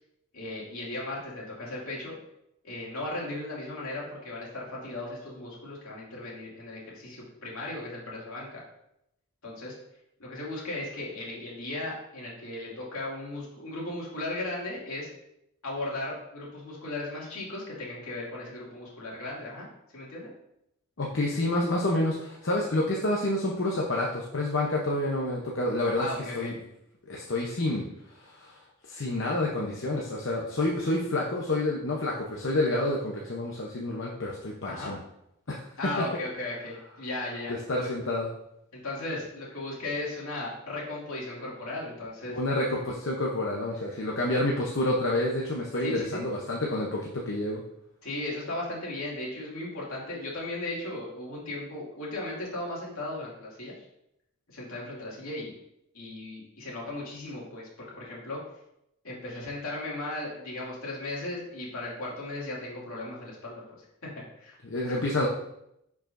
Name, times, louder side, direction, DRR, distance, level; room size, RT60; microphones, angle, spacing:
voice 1, 0.3-2.1 2.6-8.6 9.4-9.7 10.2-15.1 15.6-20.3 26.0-26.5 34.6-35.0 35.8-38.1 38.7-42.4 45.8-46.2 48.0-53.7 54.5-55.5 55.9-58.4 59.0-63.6 64.4-64.6 64.8-64.9, left 2 dB, 75° left, -4 dB, 2.4 m, -36 dB
voice 2, 21.0-26.1 26.3-26.5 27.1-27.8 28.3-28.6 28.9-35.0 35.5-35.6 37.5-38.3 42.3-47.6 64.6-65.3, left 1 dB, 55° left, -2 dB, 0.8 m, -28 dB
10.5 x 4.8 x 2.6 m, 0.80 s
head